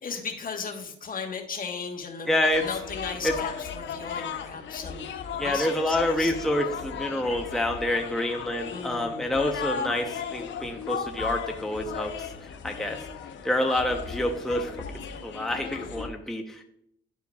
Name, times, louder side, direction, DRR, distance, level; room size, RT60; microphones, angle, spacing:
voice 1, 0.0-6.3 8.7-9.3 12.7-13.1, left 5 dB, 40° left, 3 dB, 1.3 m, -37 dB
voice 2, 2.3-2.7 3.2-3.3 5.4-13.0 13.4-14.9 15.2-16.6, left 1 dB, ahead, 3 dB, 0.8 m, -27 dB
sound 1, 2.5-16.1, left 6 dB, 60° left, 0.8 m, -36 dB
11.5 x 4.5 x 2.4 m, 0.74 s
supercardioid pair, 70°, 21 cm